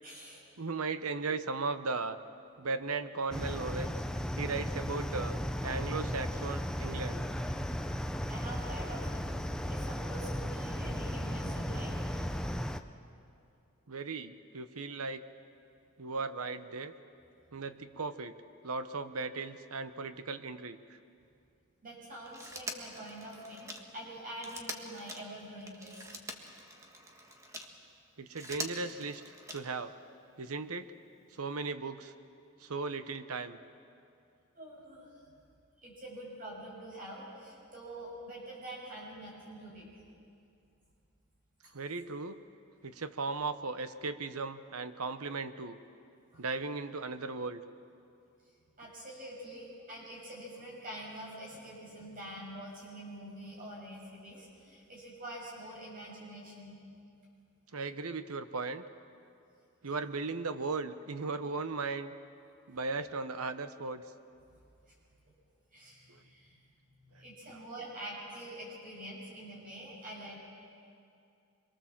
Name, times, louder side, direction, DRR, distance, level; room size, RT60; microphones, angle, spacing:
voice 1, 0.0-0.4 8.3-9.3 9.7-12.0 21.8-26.2 34.6-35.3 35.8-39.9 41.6-41.7 46.3-46.5 48.8-56.8 65.7-66.6 67.0-70.4, right 1 dB, 40° right, -4 dB, 7.2 m, -46 dB
voice 2, 0.6-2.2 2.6-3.9 4.4-5.3 5.6-7.2 13.9-15.2 16.0-16.9 17.5-18.3 18.6-21.0 28.2-29.9 30.4-30.9 31.3-32.1 32.6-33.6 41.7-42.4 42.8-45.8 46.4-47.6 57.7-58.8 59.8-62.1 62.7-64.0 66.1-66.2 67.5-67.6, right 4 dB, 85° right, 11 dB, 1.0 m, -37 dB
sound 1, 3.3-12.8, equal, 5° left, 0.6 m, -35 dB
Telephone, 22.3-27.7 28.2-29.9 31.2-31.3, right 1 dB, 15° right, 1.5 m, -44 dB
26.0 x 23.0 x 7.4 m, 2.5 s
head